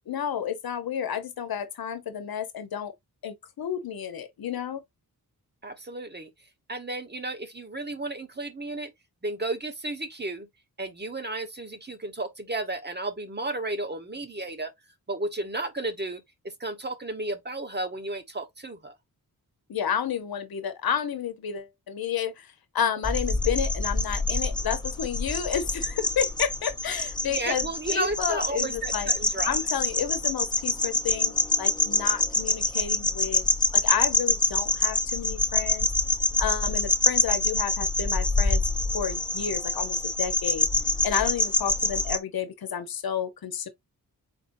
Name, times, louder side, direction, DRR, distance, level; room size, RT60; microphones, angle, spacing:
voice 1, 0.0-2.9 3.2-4.8 19.7-29.1 29.4-33.4 33.7-35.9 36.4-38.6 38.9-40.7 41.0-43.7, left 8 dB, 80° left, 1.0 m, -31 dB
voice 2, 5.6-6.3 6.7-8.9 9.2-10.5 10.8-14.7 15.1-16.2 16.6-18.9 27.3-29.6, right 2 dB, 30° right, 1.1 m, -33 dB
sound 1, 23.0-42.2, left 2 dB, 10° left, 0.8 m, -26 dB
4.4 x 3.9 x 2.6 m
cardioid pair, 60°, 36 cm